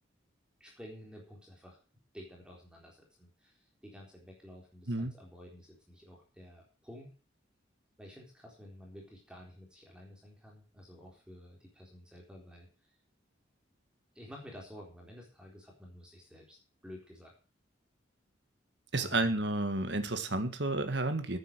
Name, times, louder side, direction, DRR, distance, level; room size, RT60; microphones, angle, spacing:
voice 1, 0.6-1.8 2.1-7.1 8.0-12.7 14.1-16.6 16.8-17.3 18.9-19.4, equal, 5° right, -1 dB, 3.8 m, -51 dB
voice 2, 18.9-21.4, right 2 dB, 60° right, 8 dB, 1.8 m, -31 dB
10.0 x 9.2 x 7.7 m, 0.37 s
head